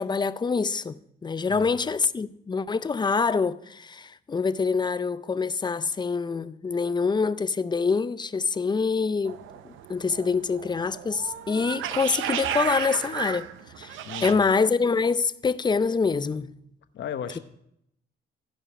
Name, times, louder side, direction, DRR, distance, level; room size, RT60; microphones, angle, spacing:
voice 1, 0.0-9.4 9.6-13.5 13.8-16.5, left 4 dB, 20° left, 0.4 m, -25 dB
voice 2, 1.5-1.9 14.1-14.5 16.9-17.4, left 8 dB, 65° left, 1.0 m, -36 dB
sound 1, 9.2-14.3, right 10 dB, 80° right, 0.6 m, -34 dB
15.5 x 5.3 x 4.8 m
cardioid pair, 90°, 20 cm